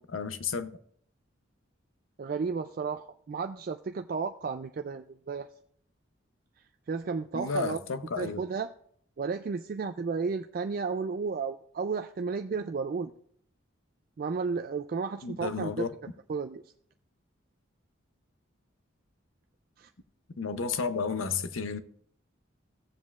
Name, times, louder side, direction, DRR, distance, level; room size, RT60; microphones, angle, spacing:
voice 1, 0.1-0.7 7.3-8.4 15.2-15.9 20.4-21.8, left 5 dB, 85° left, 0.7 m, -32 dB
voice 2, 2.2-5.5 6.9-7.8 8.2-8.7 9.2-13.1 14.2-15.9 16.3-16.6 19.8-19.9, right 5 dB, 45° right, 0.3 m, -33 dB
17.0 x 7.3 x 2.4 m
head